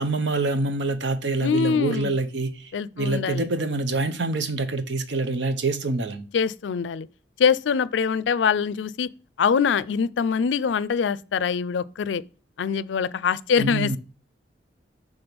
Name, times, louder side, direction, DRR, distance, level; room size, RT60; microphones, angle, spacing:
voice 1, 0.0-6.3 13.6-14.0, right 3 dB, 80° right, 0.8 m, -26 dB
voice 2, 1.4-2.1 2.7-3.5 6.3-7.1 7.4-9.1 9.4-12.2 12.6-14.0, left 6 dB, 85° left, 0.4 m, -23 dB
6.1 x 3.5 x 5.2 m
head